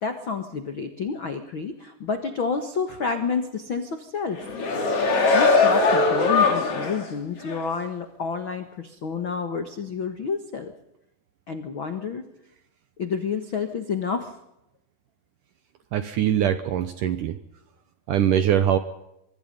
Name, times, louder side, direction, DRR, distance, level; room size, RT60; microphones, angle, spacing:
voice 1, 0.0-4.5 5.2-10.7 11.5-12.2 13.0-14.3, left 5 dB, 90° left, 7 dB, 1.1 m, -29 dB
sound 1, 4.3-7.1 7.5-7.6, left 4 dB, 35° left, 3.7 m, -20 dB
voice 2, 15.9-17.4 18.1-18.8, right 10 dB, 75° right, 10 dB, 2.0 m, -22 dB
25.0 x 21.5 x 5.4 m, 0.86 s
omnidirectional pair, 4.9 m